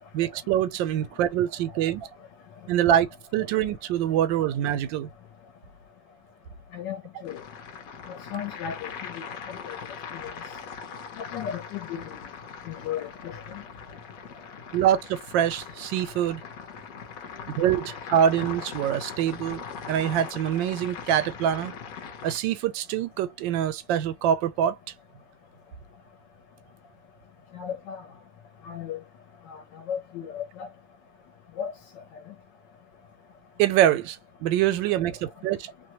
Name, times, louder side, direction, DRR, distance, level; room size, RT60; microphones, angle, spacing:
voice 1, 0.1-2.1 2.7-3.1 3.3-5.1 14.7-16.4 17.6-21.7 22.2-24.8 33.6-35.7, right 10 dB, 85° right, 1.3 m, -25 dB
voice 2, 6.7-7.4 8.1-9.2 9.6-9.9 10.2-10.3 11.2-12.2 12.7-13.4 27.5-28.0 28.6-29.0 29.5-29.6 29.9-30.7 31.6-31.7, left 8 dB, 75° left, 1.3 m, -35 dB
sound 1, 7.2-22.4, left 6 dB, 60° left, 1.0 m, -40 dB
3.1 x 2.1 x 2.8 m
omnidirectional pair, 2.0 m